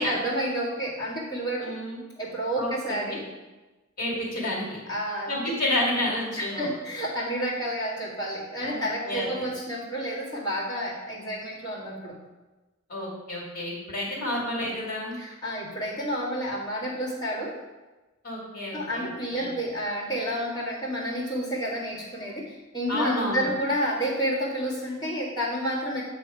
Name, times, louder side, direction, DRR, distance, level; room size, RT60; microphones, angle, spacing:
voice 1, 0.0-1.7 2.2-3.2 4.9-5.4 6.4-12.1 15.2-17.5 18.7-26.0, equal, 20° left, -7 dB, 1.8 m, -30 dB
voice 2, 1.6-2.0 2.6-3.2 4.0-4.8 5.3-6.7 8.6-9.4 12.9-15.2 18.2-19.5 22.9-23.5, left 1 dB, 45° left, -5 dB, 2.4 m, -30 dB
7.8 x 3.4 x 4.7 m, 1.1 s
head